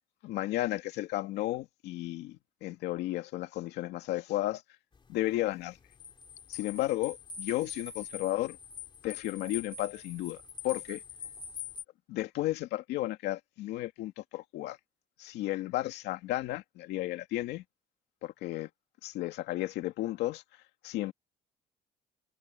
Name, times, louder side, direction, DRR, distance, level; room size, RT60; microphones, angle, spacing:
voice 1, 0.2-4.6 5.1-5.8 6.5-8.6 9.0-11.0 12.1-14.8 15.2-17.6 18.2-18.7 19.0-20.4 20.8-21.1, left 16 dB, 85° left, 2.4 m, -33 dB
sound 1, 4.9-11.8, left 6 dB, 30° left, 2.9 m, -44 dB
cardioid pair, 110°, 17 cm